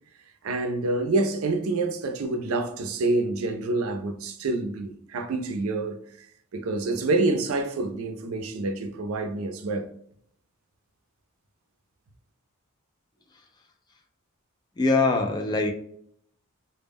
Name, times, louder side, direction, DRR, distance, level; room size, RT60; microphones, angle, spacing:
voice 1, 0.4-6.3 6.5-9.9, right 2 dB, 75° right, 0.4 m, -27 dB
voice 2, 14.8-15.7, left 3 dB, 20° left, 0.3 m, -22 dB
2.1 x 2.0 x 3.4 m
head